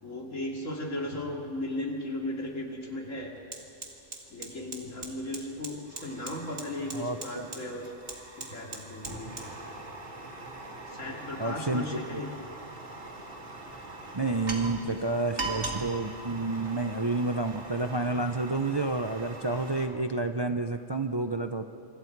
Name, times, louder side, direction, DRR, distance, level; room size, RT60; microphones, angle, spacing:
voice 1, 0.0-3.3 4.3-7.9 8.4-9.5 10.8-12.3, left 1 dB, 85° left, 0 dB, 3.1 m, -36 dB
Fire, 2.4-2.5 2.8-19.9, right 2 dB, 65° right, 2.5 m, -41 dB
voice 2, 6.9-7.5 11.4-11.8 12.1-12.2 14.1-21.6, right 2 dB, 30° right, 7 dB, 0.5 m, -30 dB
26.5 x 25.0 x 4.7 m, 2.7 s
omnidirectional pair, 1.3 m